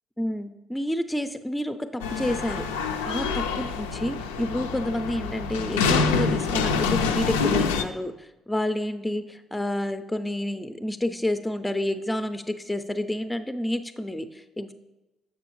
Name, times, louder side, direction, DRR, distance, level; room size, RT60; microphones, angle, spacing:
voice 1, 0.2-2.7 3.1-3.2 3.6-14.7, left 1 dB, 10° left, 9 dB, 0.4 m, -29 dB
sound 1, 2.0-7.8, left 5 dB, 85° left, 0.3 m, -26 dB
6.8 x 6.0 x 3.1 m, 1.0 s
hypercardioid pair, 50°, 0 cm